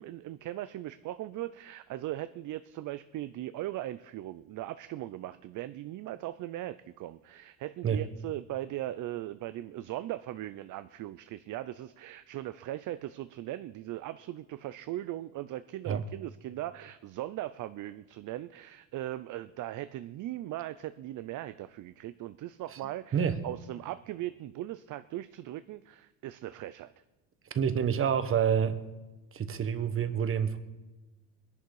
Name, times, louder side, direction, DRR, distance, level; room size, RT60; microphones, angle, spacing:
voice 1, 0.0-26.9, right 14 dB, 45° right, 13 dB, 0.5 m, -39 dB
voice 2, 27.5-28.8 29.3-30.6, right 8 dB, 30° right, 11 dB, 1.1 m, -27 dB
22.0 x 11.0 x 4.8 m, 1.1 s
cardioid pair, 140°, 42 cm